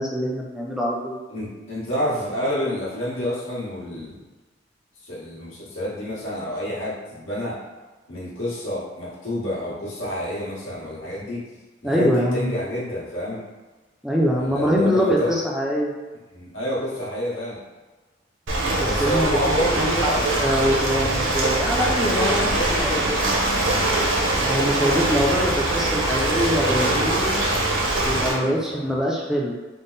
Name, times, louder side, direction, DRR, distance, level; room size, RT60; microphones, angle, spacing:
voice 1, 0.0-1.2 11.8-12.5 14.0-15.9 18.7-19.4 19.7-20.1 20.4-22.5 22.7-22.9 23.2-23.3 24.4-27.4 28.0-29.5, equal, 5° right, -3 dB, 0.4 m, -23 dB
voice 2, 1.3-4.2 5.0-7.6 8.1-11.4 11.8-13.4 14.2-15.4 16.3-17.6 18.6-20.5 22.0-23.8 28.1-28.9, equal, 90° left, -8 dB, 1.4 m, -29 dB
Ocean, 18.5-28.3, right 2 dB, 70° right, 0.8 m, -22 dB
3.6 x 2.1 x 3.9 m, 1.3 s
head